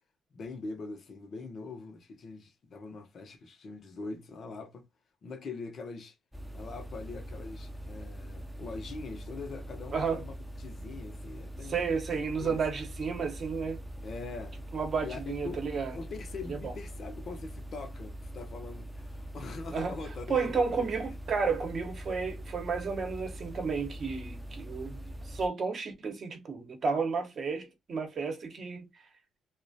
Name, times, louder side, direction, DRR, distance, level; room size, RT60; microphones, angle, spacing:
voice 1, 0.3-4.9 5.2-6.1 6.5-11.9 12.3-12.6 14.0-14.6 15.0-15.6 15.9-20.9 21.6-21.7, left 3 dB, 55° left, 0.5 m, -43 dB
sound 1, 6.3-25.5, equal, ahead, 0.4 m, -43 dB
voice 2, 9.9-10.2 11.6-13.8 14.7-15.9 16.5-16.7 19.7-19.9 20.3-28.9, right 5 dB, 50° right, 0.7 m, -32 dB
2.3 x 2.0 x 2.6 m
cardioid pair, 90°, 0 cm